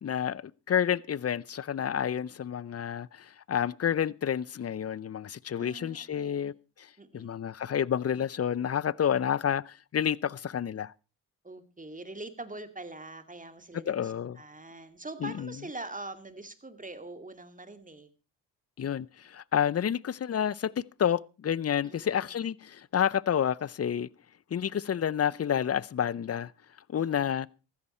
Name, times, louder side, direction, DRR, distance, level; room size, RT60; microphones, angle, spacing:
voice 1, 0.0-6.9 7.1-10.9 13.9-14.4 15.2-15.5 18.8-24.1 24.5-26.5 26.9-27.5, left 9 dB, 35° left, 0.6 m, -29 dB
voice 2, 5.6-6.5 7.0-7.3 11.4-18.1 21.8-22.4 27.0-27.2, right 2 dB, 20° right, 2.3 m, -44 dB
14.5 x 13.0 x 4.3 m
supercardioid pair, 60°, 43 cm